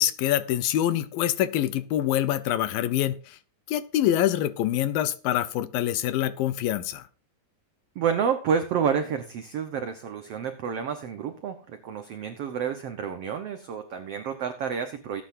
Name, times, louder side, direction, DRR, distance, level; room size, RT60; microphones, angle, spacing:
voice 1, 0.0-3.4 3.7-7.0, left 12 dB, 80° left, 13 dB, 2.5 m, -25 dB
voice 2, 7.9-15.2, right 7 dB, 80° right, 7 dB, 1.3 m, -29 dB
19.0 x 9.5 x 2.6 m, 0.35 s
omnidirectional pair, 4.2 m